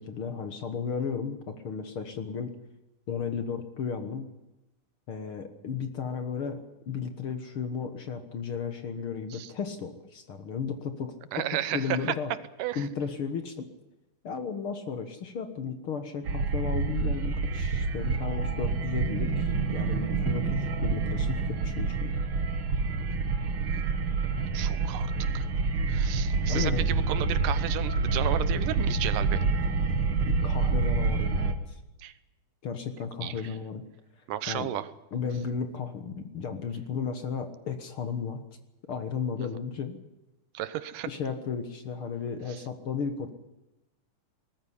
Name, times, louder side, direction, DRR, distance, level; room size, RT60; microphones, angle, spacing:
voice 1, 0.0-2.5 3.1-4.3 5.1-11.4 11.7-12.3 12.8-13.7 14.2-22.2 26.5-26.9 30.4-31.8 32.6-33.8 34.5-34.7 35.1-38.4 38.9-40.0 41.1-43.3, left 6 dB, 50° left, 8 dB, 1.9 m, -34 dB
voice 2, 11.3-12.2 12.6-12.9 24.5-25.5 25.9-29.4 32.0-32.1 33.2-33.3 34.3-34.9 39.4-39.5 40.5-41.1, right 12 dB, 85° right, 15 dB, 2.6 m, -33 dB
sound 1, 16.2-31.5, right 4 dB, 50° right, 2.0 m, -27 dB
20.0 x 14.0 x 10.0 m, 0.99 s
omnidirectional pair, 3.7 m